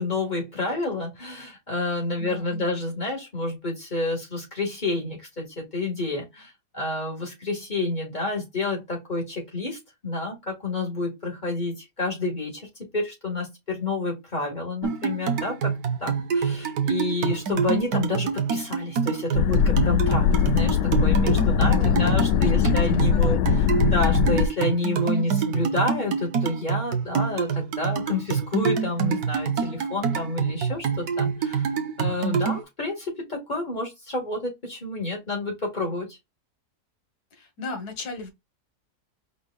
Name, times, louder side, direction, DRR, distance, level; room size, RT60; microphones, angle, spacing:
voice 1, 0.0-12.7 12.9-15.7 16.0-31.7 32.0-36.1, left 2 dB, 25° left, 2.1 m, -29 dB
voice 2, 2.2-2.8 21.6-23.4 25.1-25.6 37.3-38.3, left 4 dB, 70° left, 1.9 m, -38 dB
sound 1, 14.8-32.6, right 6 dB, 70° right, 1.4 m, -27 dB
sound 2, 19.3-24.5, left 8 dB, 90° left, 1.2 m, -21 dB
4.8 x 4.0 x 2.4 m
omnidirectional pair, 1.7 m